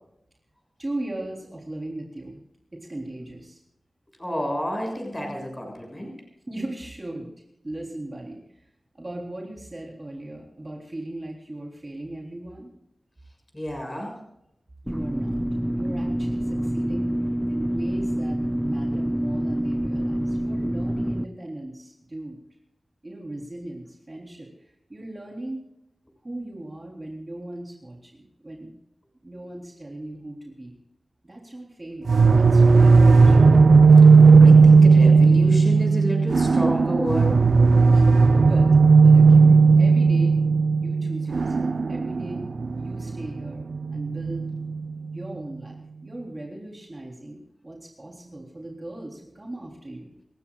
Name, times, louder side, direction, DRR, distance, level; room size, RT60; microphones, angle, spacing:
voice 1, 0.8-2.4 2.7-3.6 6.5-7.3 7.6-8.7 8.9-12.7 14.8-15.4 15.7-17.1 17.5-22.4 23.0-25.6 26.2-28.7 29.2-30.7 31.2-33.5 37.9-38.0 38.3-38.7 39.0-40.4 40.8-42.4 42.7-43.6 43.9-44.5 45.1-50.1, right 1 dB, 30° right, -1 dB, 3.7 m, -38 dB
voice 2, 4.2-6.1 13.5-14.1 34.4-37.4, equal, 15° left, 1 dB, 6.7 m, -30 dB
sound 1, 14.9-21.3, equal, 5° right, 0.7 m, -27 dB
sound 2, 32.1-44.8, right 4 dB, 80° right, 0.6 m, -15 dB
28.5 x 16.0 x 2.5 m, 0.80 s
wide cardioid pair, 90°, 0 cm